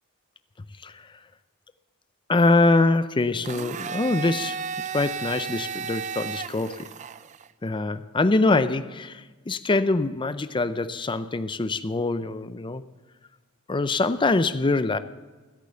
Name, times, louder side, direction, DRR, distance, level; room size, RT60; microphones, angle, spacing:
voice 1, 2.3-4.6 4.9-6.9 7.6-12.8 13.7-15.0, left 2 dB, 20° left, 12 dB, 0.5 m, -24 dB
Domestic sounds home sounds, 3.4-7.5, right 6 dB, 35° right, 0.4 m, -34 dB
14.5 x 8.3 x 6.8 m, 1.3 s
head